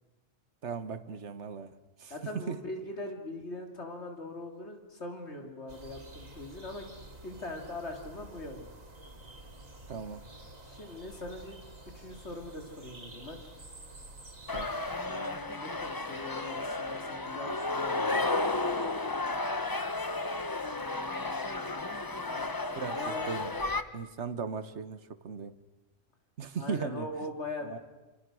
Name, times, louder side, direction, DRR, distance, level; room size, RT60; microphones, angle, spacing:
voice 1, 0.6-2.6 9.9-10.2 14.5-14.7 22.7-23.5 23.9-25.5 26.4-27.1 27.6-27.8, right 6 dB, 60° right, 12 dB, 1.5 m, -37 dB
voice 2, 2.1-6.9 7.2-8.8 10.6-11.6 11.9-13.4 15.0-18.3 20.7-23.3 26.5-27.8, left 2 dB, 55° left, 3 dB, 3.4 m, -42 dB
sound 1, 5.7-15.1, right 1 dB, 80° right, 3.7 m, -50 dB
sound 2, 14.5-23.8, left 2 dB, 20° left, 0.8 m, -33 dB
28.0 x 27.0 x 6.3 m, 1.1 s
omnidirectional pair, 1.3 m